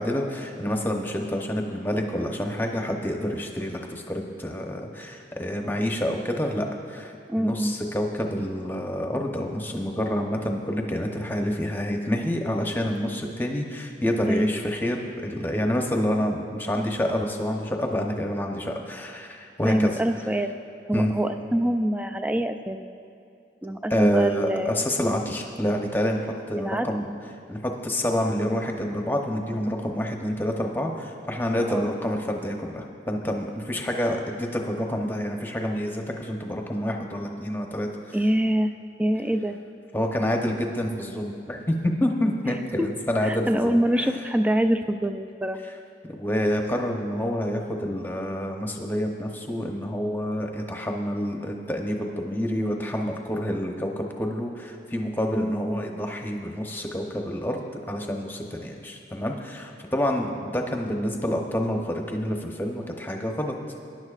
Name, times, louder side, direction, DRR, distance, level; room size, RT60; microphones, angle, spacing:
voice 1, 0.0-20.0 20.9-21.1 23.9-27.1 27.5-38.2 39.9-44.1 46.1-63.5, equal, 10° left, 1 dB, 0.9 m, -28 dB
voice 2, 7.3-7.7 14.3-14.5 19.6-20.5 20.9-22.8 23.6-24.8 26.6-26.9 31.7-31.9 38.1-38.7 39.0-39.6 42.8-42.9 43.2-45.6 55.3-55.8, right 1 dB, 5° right, 7 dB, 0.4 m, -24 dB
21.0 x 10.5 x 2.5 m, 2.5 s
head